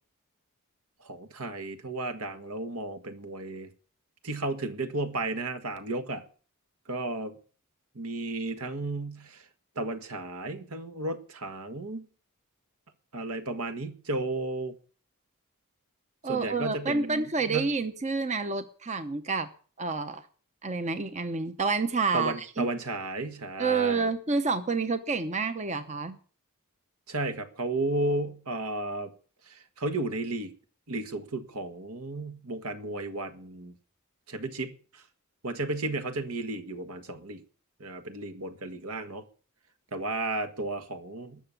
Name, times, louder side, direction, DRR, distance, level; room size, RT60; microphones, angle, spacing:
voice 1, 1.0-3.7 4.2-6.2 6.9-7.3 7.9-9.4 9.7-12.1 13.1-14.8 16.2-17.7 22.1-24.1 27.1-29.1 29.5-30.5 30.9-33.7 34.3-35.0 35.4-37.4 37.8-39.2 39.9-41.4, right 2 dB, 75° right, 1.6 m, -33 dB
voice 2, 16.2-19.5 19.8-20.2 20.6-22.7 23.6-26.2, right 4 dB, 30° right, 0.7 m, -29 dB
19.5 x 6.8 x 7.0 m
head